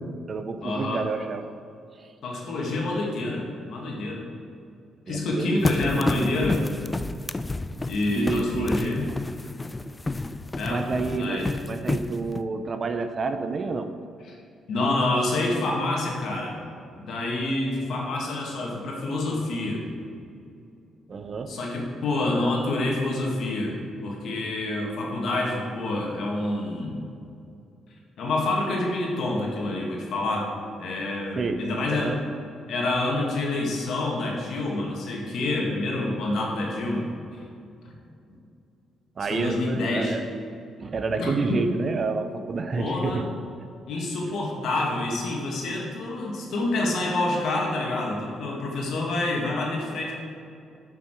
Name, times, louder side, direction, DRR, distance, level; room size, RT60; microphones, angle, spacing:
voice 1, 0.0-1.5 2.0-2.1 5.1-5.6 5.9-6.0 8.1-9.0 10.7-13.9 21.1-21.5 31.4-32.2 39.2-40.2 40.8-43.3, right 4 dB, 45° right, 8 dB, 0.6 m, -29 dB
voice 2, 0.6-1.0 2.2-4.3 5.1-6.6 7.9-9.1 10.5-10.8 11.1-11.5 14.7-16.6 17.0-19.9 21.5-23.8 24.0-27.0 28.2-30.5 30.8-32.2 32.7-37.1 39.2-40.2 41.2-41.6 42.8-43.2 43.9-50.2, left 2 dB, 70° left, -1 dB, 1.9 m, -27 dB
sound 1, 5.6-12.4, left 2 dB, 20° left, 0.3 m, -30 dB
7.0 x 5.9 x 6.2 m, 2.5 s
cardioid pair, 90°, 0 cm